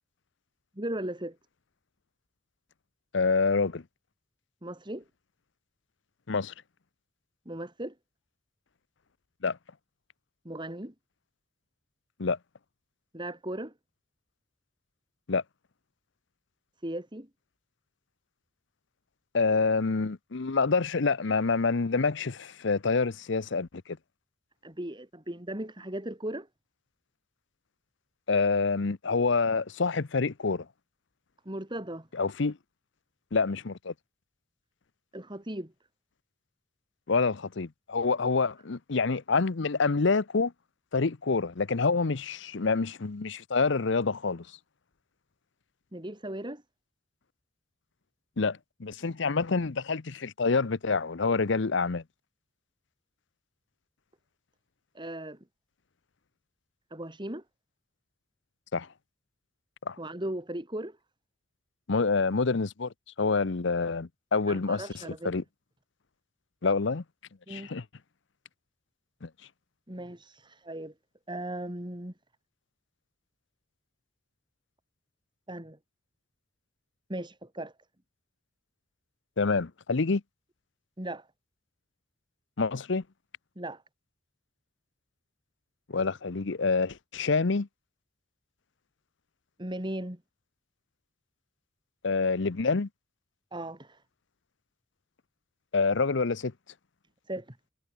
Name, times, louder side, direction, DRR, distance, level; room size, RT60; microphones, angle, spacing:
voice 1, 0.8-1.4 4.6-5.0 7.4-7.9 10.4-10.9 13.1-13.7 16.8-17.3 24.6-26.5 31.4-32.1 35.1-35.7 45.9-46.6 54.9-55.4 56.9-57.4 60.0-61.0 64.5-65.3 67.5-67.7 69.9-70.9 71.3-72.1 75.5-75.8 77.1-77.7 81.0-81.3 83.6-83.8 89.6-90.2 93.5-94.0 97.3-97.6, right 1 dB, 25° right, 3.1 m, -37 dB
voice 2, 3.1-3.8 6.3-6.5 9.4-9.6 12.2-12.4 15.3-15.4 19.3-24.0 28.3-30.7 32.1-32.6 33.3-33.9 37.1-40.5 40.9-44.5 48.4-52.0 58.7-58.9 59.9-60.0 61.9-65.4 66.6-67.0 67.5-67.8 69.2-69.3 79.4-80.2 82.6-83.0 85.9-87.7 92.0-92.9 95.7-96.5, left 4 dB, 65° left, 0.8 m, -27 dB
head